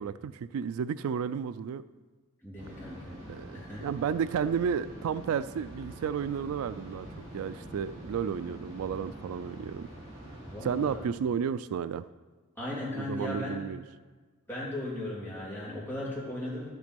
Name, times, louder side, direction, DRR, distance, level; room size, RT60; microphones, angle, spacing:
voice 1, 0.0-1.8 3.3-9.9 10.6-12.0 12.9-13.8, right 7 dB, 80° right, 15 dB, 0.3 m, -32 dB
voice 2, 2.4-3.2 3.5-3.9 10.5-11.0 12.6-13.5 14.5-16.7, left 1 dB, 10° left, -7 dB, 3.2 m, -37 dB
sound 1, 2.6-11.0, right 1 dB, 25° right, 4.2 m, -45 dB
11.0 x 8.1 x 5.2 m, 1.3 s
head